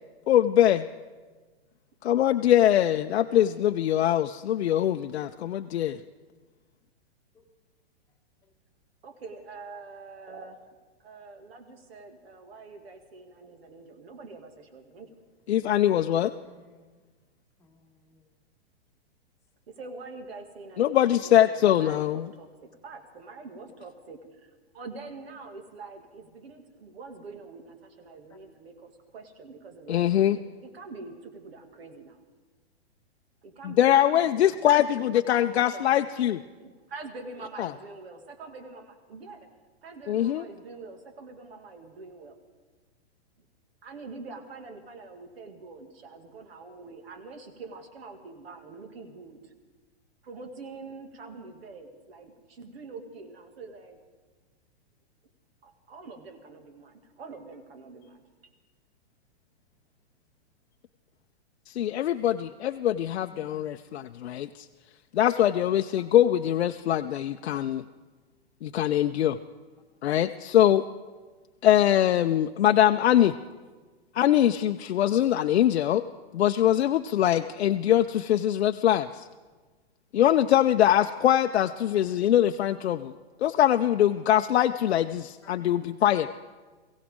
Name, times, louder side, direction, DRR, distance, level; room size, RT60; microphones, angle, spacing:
voice 1, 0.3-0.9 2.0-6.0 15.5-16.3 20.8-22.3 29.9-30.4 33.6-36.4 37.6-37.7 40.1-40.4 61.7-64.7 65.1-67.8 68.6-69.4 70.0-70.8 71.6-73.3 74.1-76.0 76.3-79.3 80.1-83.1 83.4-86.3, left 11 dB, 80° left, 6 dB, 0.6 m, -23 dB
voice 2, 3.6-4.0 9.0-10.6 11.0-15.1 19.7-30.1 30.3-32.2 33.4-34.7 35.0-36.1 36.6-39.5 39.8-42.4 43.4-43.5 43.8-49.5 50.2-54.0 55.6-58.2, right 3 dB, 65° right, 5 dB, 2.3 m, -45 dB
voice 3, 16.1-16.9 17.6-18.2 28.3-28.4 63.3-63.5 66.0-66.1 85.4-85.5, left 1 dB, 10° left, 0 dB, 1.3 m, -56 dB
22.5 x 16.5 x 3.7 m, 1.3 s
hypercardioid pair, 160°, 32 cm